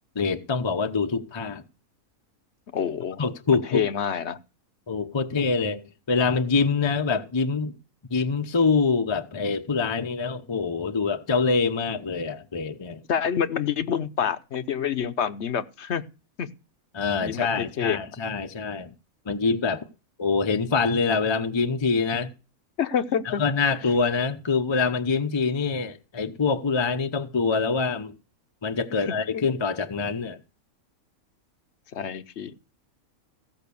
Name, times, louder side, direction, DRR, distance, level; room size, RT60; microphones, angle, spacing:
voice 1, 0.1-1.6 3.2-3.8 4.9-7.8 8.1-13.0 16.9-18.9 19.3-19.8 20.2-22.3 23.2-28.2 28.6-30.4, left 4 dB, 25° left, 0.6 m, -25 dB
voice 2, 2.7-3.2 3.5-4.4 13.1-16.0 16.4-16.5 17.2-18.0 22.8-23.4 31.9-32.5, left 8 dB, 55° left, 1.0 m, -27 dB
16.0 x 5.7 x 6.9 m
omnidirectional pair, 1.5 m